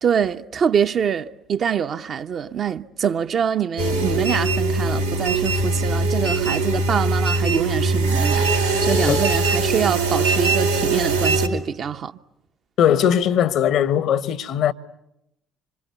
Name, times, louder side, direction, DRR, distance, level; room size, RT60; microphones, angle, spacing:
voice 1, 0.0-12.1, right 7 dB, 45° right, 1.0 m, -24 dB
sound 1, 3.8-11.5, right 3 dB, 90° right, 3.5 m, -21 dB
voice 2, 12.8-14.7, left 9 dB, 55° left, 1.1 m, -19 dB
26.5 x 26.0 x 8.3 m
figure-of-eight pair, 50°, 0 cm